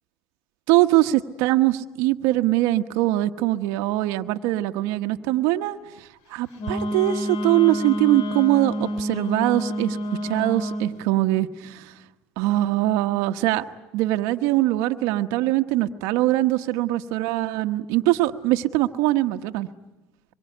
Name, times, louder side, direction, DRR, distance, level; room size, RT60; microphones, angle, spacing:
voice 1, 0.7-5.8 6.3-10.0 10.2-11.9 12.4-13.6 13.9-19.7, right 16 dB, 70° right, 7 dB, 1.2 m, -22 dB
Wind instrument woodwind instrument, 6.6-11.0, equal, 75° left, 2.5 m, -28 dB
25.0 x 23.0 x 9.2 m, 0.98 s
supercardioid pair, 95°, 6 cm